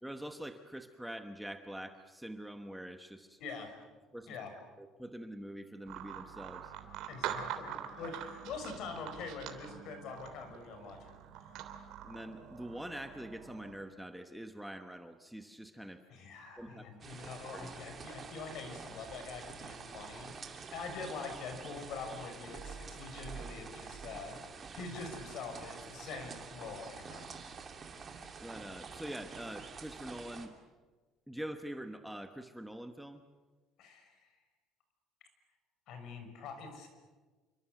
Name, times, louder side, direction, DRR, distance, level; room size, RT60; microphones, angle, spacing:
voice 1, 0.0-3.4 4.1-4.3 4.8-6.7 8.0-8.1 12.0-16.0 16.6-16.9 17.5-17.8 28.4-30.5 31.3-33.2, right 1 dB, ahead, 7 dB, 1.1 m, -45 dB
voice 2, 3.4-3.7 4.3-4.5 7.1-11.1 16.1-24.4 24.7-27.3 33.8-34.3 35.9-36.9, left 4 dB, 55° left, 6 dB, 6.2 m, -44 dB
sound 1, 5.9-13.7, right 9 dB, 65° right, 3.2 m, -44 dB
sound 2, 17.0-30.5, right 5 dB, 25° right, 2.7 m, -47 dB
28.0 x 25.0 x 8.0 m, 1.3 s
cardioid pair, 165°, 0 cm